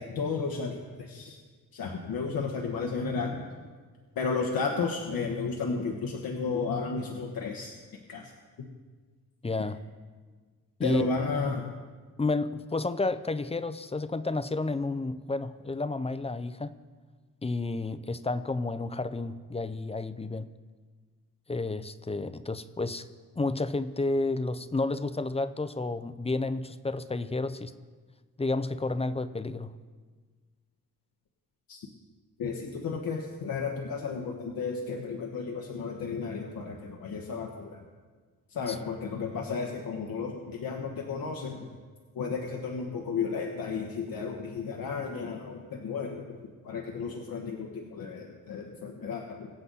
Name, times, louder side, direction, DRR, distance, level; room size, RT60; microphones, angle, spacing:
voice 1, 0.0-1.4 1.7-3.5 4.2-7.7 8.1-8.3 10.8-11.7 31.7-31.8 32.4-37.8 38.5-41.7 42.1-46.4 46.6-49.5, left 5 dB, 80° left, 1 dB, 1.3 m, -33 dB
voice 2, 9.4-9.8 10.8-11.0 12.2-16.7 17.4-20.5 21.5-23.1 23.4-27.7 28.4-29.7 38.7-38.8, left 3 dB, 15° left, 13 dB, 0.6 m, -31 dB
23.0 x 7.9 x 4.1 m, 1.5 s
cardioid pair, 85°, 34 cm